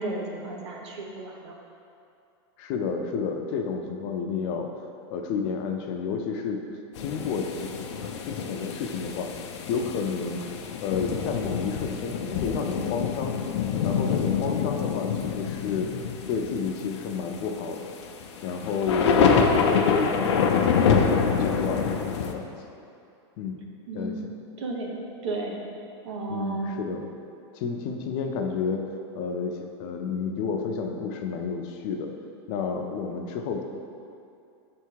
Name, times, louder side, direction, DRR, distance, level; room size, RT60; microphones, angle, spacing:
voice 1, 0.0-1.5 23.9-24.2 24.6-24.9 25.2-25.6 26.0-26.8, right 3 dB, 90° right, 0 dB, 1.1 m, -33 dB
voice 2, 2.6-4.7 5.1-6.6 7.0-7.7 8.2-9.3 9.7-10.4 10.8-13.4 13.8-15.9 16.3-17.9 18.4-21.8 22.3-22.5 23.4-23.6 23.9-24.1 26.3-27.0 27.5-28.8 29.1-32.1 32.5-33.6, left 5 dB, 35° left, 3 dB, 0.5 m, -30 dB
sound 1, 7.0-22.3, left 6 dB, 85° left, 0.6 m, -26 dB
6.5 x 3.5 x 4.6 m, 2.6 s
supercardioid pair, 165°, 14 cm